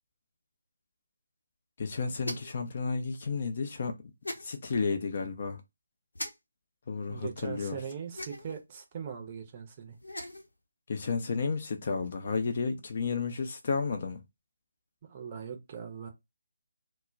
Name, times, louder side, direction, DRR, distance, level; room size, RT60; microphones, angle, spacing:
voice 1, 1.8-3.9 4.4-5.6 6.9-7.8 10.9-14.2, left 4 dB, 40° left, 0.5 m, -32 dB
sound 1, 2.2-2.6 4.2-4.4 6.1-6.3 8.1-8.6 9.9-10.5, left 1 dB, 70° left, 0.7 m, -38 dB
voice 2, 7.1-10.0 15.1-16.1, right 7 dB, 30° right, 0.6 m, -40 dB
2.2 x 2.1 x 3.7 m
figure-of-eight pair, 150°, 0 cm